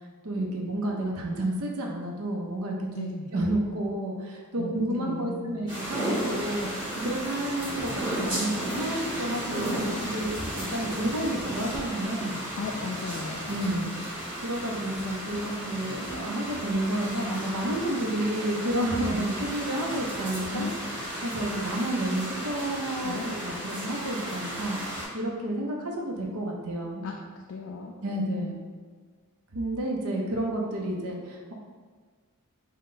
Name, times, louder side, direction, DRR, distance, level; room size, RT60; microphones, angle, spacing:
voice 1, 0.2-3.1 3.3-12.4 13.5-13.9 14.4-20.7 21.2-24.8 25.1-27.1 28.0-28.6 29.5-31.5, right 1 dB, 85° right, 0 dB, 0.7 m, -30 dB
voice 2, 2.9-3.3 4.6-5.6 12.6-13.7 20.5-20.7 23.0-23.3 27.0-27.1 27.5-28.0, left 4 dB, 60° left, 1 dB, 0.3 m, -35 dB
sound 1, 5.7-25.1, right 1 dB, 20° right, 1.5 m, -34 dB
3.8 x 2.2 x 3.7 m, 1.5 s
head